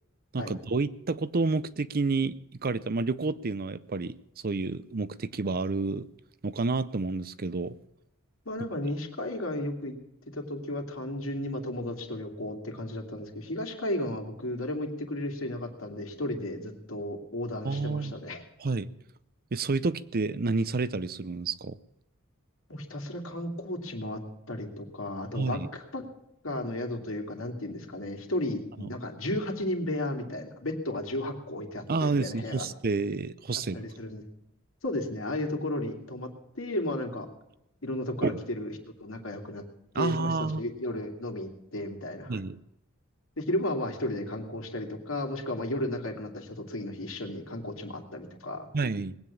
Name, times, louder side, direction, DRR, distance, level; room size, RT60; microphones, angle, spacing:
voice 1, 0.3-4.2 4.4-6.1 6.4-7.8 17.6-18.1 18.6-18.9 19.5-21.8 25.3-25.7 28.8-28.9 31.9-33.9 38.2-38.4 39.9-40.6 42.3-42.6 48.7-49.1, right 3 dB, 45° right, 16 dB, 0.6 m, -29 dB
voice 2, 8.4-10.0 10.3-18.4 22.7-24.2 24.5-26.0 26.4-32.7 33.5-34.2 34.8-36.3 36.5-37.3 37.8-39.6 39.9-42.4 43.4-48.7, left 1 dB, 65° left, 4 dB, 2.7 m, -34 dB
20.0 x 9.0 x 7.2 m, 0.83 s
head